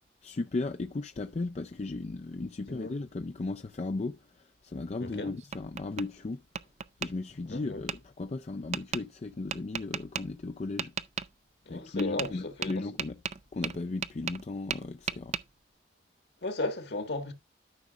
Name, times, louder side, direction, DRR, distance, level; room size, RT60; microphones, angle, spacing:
voice 1, 0.2-6.4 7.0-10.9 11.7-13.2 13.5-15.4, left 3 dB, 40° left, 0.4 m, -36 dB
voice 2, 5.0-5.3 7.5-7.8 11.6-12.8 16.4-17.3, left 2 dB, 65° left, 1.7 m, -35 dB
Tap, 5.0-6.1 6.5-7.1 7.9-8.0 8.7-9.0 9.5-10.2 10.8-11.3 12.0-12.3 12.6-14.4 14.7-15.4, right 7 dB, 40° right, 0.4 m, -35 dB
13.0 x 6.0 x 2.4 m
head